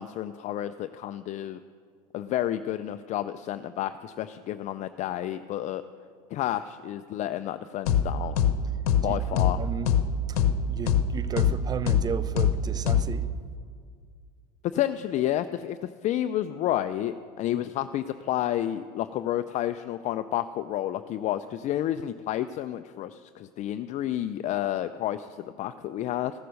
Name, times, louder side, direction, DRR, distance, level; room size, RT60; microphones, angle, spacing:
voice 1, 0.0-1.6 2.1-5.9 6.3-8.4 9.0-9.6 14.6-26.3, left 12 dB, 40° left, 0.4 m, -30 dB
sound 1, 7.9-8.0 8.4-8.5 8.9-9.0 9.4-9.5 9.9-10.0 10.4-10.5 10.9-11.0 11.4-11.5 11.9-12.0 12.4-12.5 12.9-13.0, left 9 dB, 80° left, 0.8 m, -21 dB
voice 2, 9.1-9.9 10.3-10.4 10.7-13.3, right 6 dB, 20° right, 0.4 m, -34 dB
15.0 x 6.7 x 6.4 m
hypercardioid pair, 95°, 19 cm